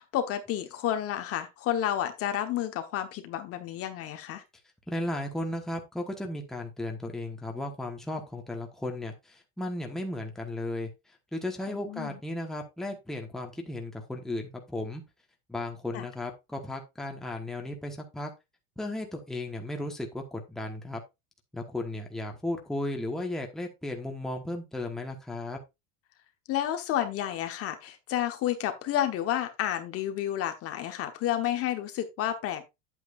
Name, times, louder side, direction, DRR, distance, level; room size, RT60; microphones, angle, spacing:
voice 1, 0.0-4.4 11.7-12.2 15.9-16.0 26.5-32.6, left 11 dB, 40° left, 1.1 m, -30 dB
voice 2, 4.9-10.9 11.3-15.0 15.5-18.3 18.8-21.0 21.5-25.6, left 1 dB, ahead, 1.2 m, -35 dB
9.1 x 8.2 x 2.5 m
supercardioid pair, 155°, 38 cm